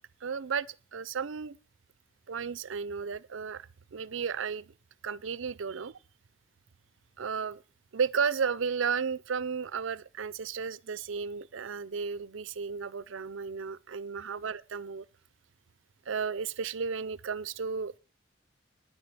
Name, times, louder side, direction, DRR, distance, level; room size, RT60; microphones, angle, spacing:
voice 1, 0.2-1.6 2.3-4.7 5.0-5.9 7.2-7.6 7.9-15.1 16.1-18.0, right 6 dB, 70° right, 0.5 m, -33 dB
10.5 x 10.0 x 6.7 m
head